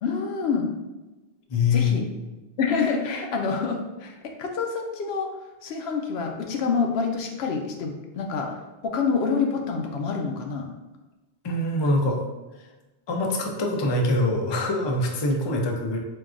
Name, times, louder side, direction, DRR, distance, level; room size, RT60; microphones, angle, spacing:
voice 1, 0.0-0.7 1.7-2.0 2.6-5.3 5.6-8.6 8.8-10.7, left 5 dB, 80° left, 3 dB, 0.8 m, -27 dB
voice 2, 1.5-2.0 11.4-12.2 13.1-16.0, left 2 dB, 45° left, 1 dB, 0.3 m, -24 dB
4.5 x 2.3 x 2.4 m, 1.1 s
omnidirectional pair, 1.0 m